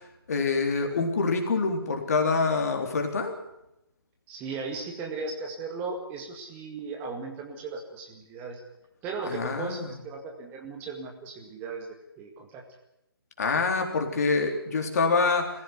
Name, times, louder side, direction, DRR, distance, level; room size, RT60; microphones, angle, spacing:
voice 1, 0.3-3.3 9.3-9.9 13.4-15.6, left 4 dB, 40° left, 4 dB, 3.7 m, -26 dB
voice 2, 4.3-8.6 9.0-11.9 12.2-12.6, right 4 dB, 15° right, 1 dB, 2.0 m, -36 dB
22.0 x 15.5 x 9.5 m, 0.85 s
figure-of-eight pair, 145°, 13 cm